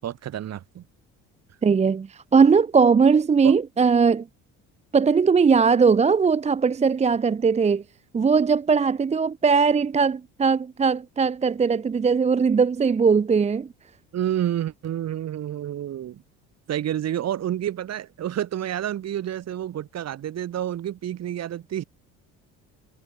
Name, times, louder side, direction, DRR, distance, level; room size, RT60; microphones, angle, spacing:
voice 1, 0.0-0.8 3.4-3.6 14.1-16.2 16.7-21.8, right 11 dB, 55° right, 5.1 m, -29 dB
voice 2, 1.6-4.3 4.9-7.8 8.1-13.7, right 5 dB, 20° right, 0.7 m, -19 dB
supercardioid pair, 95°, 31 cm